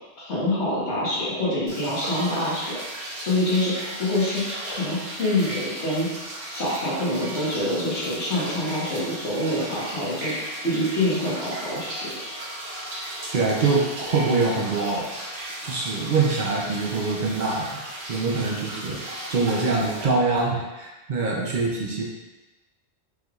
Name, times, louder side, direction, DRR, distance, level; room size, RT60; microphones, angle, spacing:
voice 1, 0.2-2.7 3.2-4.4 4.7-6.1 6.5-10.3 10.6-12.1, left 1 dB, 75° left, -7 dB, 1.6 m, -26 dB
sound 1, 1.7-20.0, right 1 dB, 70° right, 1.2 m, -36 dB
voice 2, 13.3-15.1 15.6-17.7 18.1-22.1, right 3 dB, 50° right, -3 dB, 0.7 m, -24 dB
5.1 x 3.3 x 2.4 m, 1.1 s
omnidirectional pair, 1.2 m